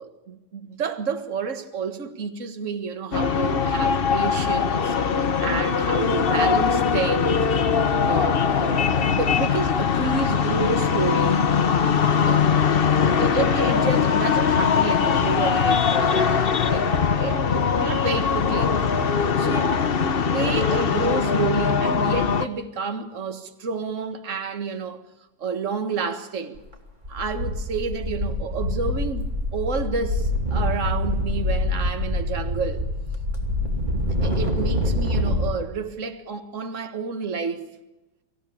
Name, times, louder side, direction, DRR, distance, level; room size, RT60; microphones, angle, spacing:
voice 1, 0.0-7.4 8.1-11.5 12.3-12.5 13.0-16.9 17.1-18.8 19.4-19.8 20.0-25.0 25.4-26.6 27.1-32.8 34.2-37.7, right 5 dB, 45° right, 1.9 m, -30 dB
sound 1, 3.1-22.5, left 6 dB, 40° left, 0.9 m, -21 dB
sound 2, 26.6-26.7 27.0-35.5, left 1 dB, 25° right, 2.9 m, -25 dB
25.0 x 16.0 x 8.6 m
omnidirectional pair, 1.9 m